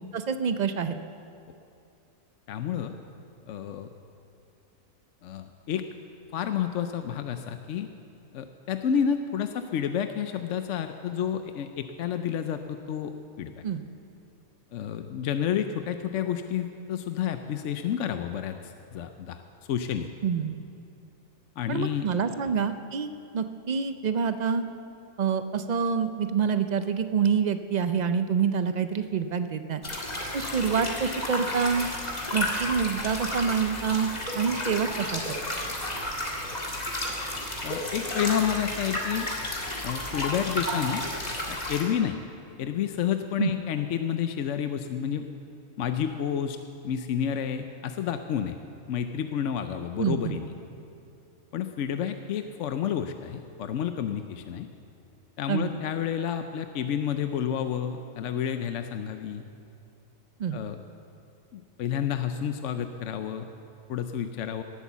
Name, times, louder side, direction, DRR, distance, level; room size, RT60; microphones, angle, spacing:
voice 1, 0.1-1.0 13.6-13.8 20.2-20.6 21.7-23.1 23.3-24.6 25.2-29.8 30.3-31.9 32.3-34.1 34.3-35.4 43.4-43.5 50.0-50.4 55.5-55.7 60.4-60.6, right 6 dB, 65° right, 9 dB, 0.4 m, -27 dB
voice 2, 2.5-2.9 3.5-3.9 5.2-5.8 6.3-7.9 8.3-13.5 14.7-19.4 19.7-20.1 21.6-22.1 37.6-39.3 39.8-41.0 41.5-42.2 42.6-45.2 45.8-46.6 46.8-48.6 48.9-50.5 51.5-54.7 55.4-59.4 60.5-60.8 61.5-63.5 63.9-64.6, left 9 dB, 65° left, 8 dB, 0.9 m, -30 dB
sound 1, 29.8-41.8, left 1 dB, 30° left, 2.1 m, -32 dB
18.0 x 8.3 x 7.3 m, 2.5 s
omnidirectional pair, 1.4 m